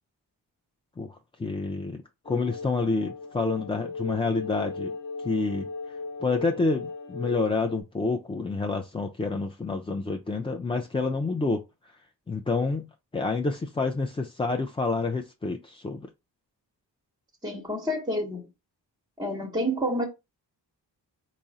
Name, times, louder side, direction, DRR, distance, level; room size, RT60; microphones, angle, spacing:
voice 1, 1.0-12.0 12.3-16.1, left 3 dB, 15° left, 0.3 m, -29 dB
sound 1, 2.2-7.8, left 3 dB, 30° left, 0.7 m, -37 dB
voice 2, 17.4-18.4 19.2-20.0, equal, 10° right, 0.8 m, -28 dB
3.6 x 2.0 x 3.9 m
cardioid pair, 60°, 43 cm